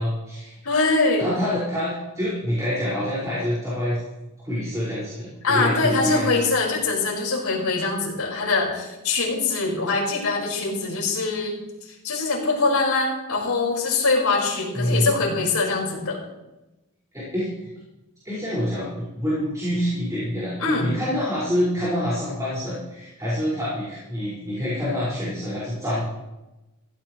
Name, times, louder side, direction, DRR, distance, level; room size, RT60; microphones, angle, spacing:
voice 1, 0.0-0.5 1.2-4.0 4.4-6.4 14.7-15.1 17.1-17.7 18.2-26.0, equal, 15° right, -9 dB, 5.6 m, -26 dB
voice 2, 0.6-1.3 5.4-11.6 12.0-16.2 20.6-20.9, left 3 dB, 80° left, -2 dB, 5.5 m, -23 dB
16.5 x 15.5 x 3.2 m, 0.99 s
head